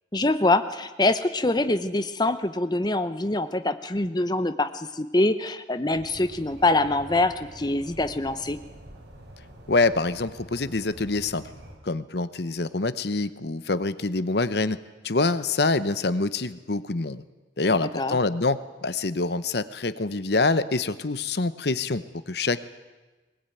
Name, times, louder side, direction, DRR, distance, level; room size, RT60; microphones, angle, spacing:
voice 1, 0.1-8.6 17.7-18.2, left 2 dB, 20° left, 10 dB, 0.8 m, -24 dB
sound 1, 5.9-11.7, equal, 65° right, 7.0 m, -46 dB
voice 2, 9.7-11.4 11.8-14.8 15.0-17.2 17.6-22.6, left 3 dB, 60° left, 14 dB, 0.9 m, -25 dB
20.5 x 20.5 x 9.1 m, 1.2 s
head